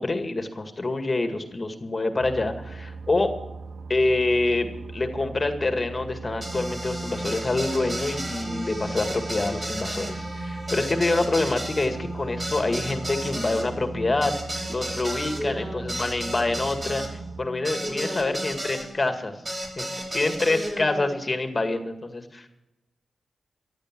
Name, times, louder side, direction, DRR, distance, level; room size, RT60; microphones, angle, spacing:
voice 1, 0.0-3.3 3.9-14.3 14.7-19.3 19.8-19.9 20.1-22.5, left 2 dB, 35° left, 7 dB, 2.0 m, -26 dB
sound 1, 2.2-17.5, right 4 dB, 85° right, 0.8 m, -39 dB
sound 2, 6.4-18.9 19.5-20.7, right 1 dB, 30° right, 4.7 m, -34 dB
voice 2, 15.2-15.9 17.8-18.5 20.5-21.2, equal, ahead, 1 dB, 6.2 m, -34 dB
14.0 x 12.0 x 6.1 m, 0.96 s
cardioid pair, 55°, 0 cm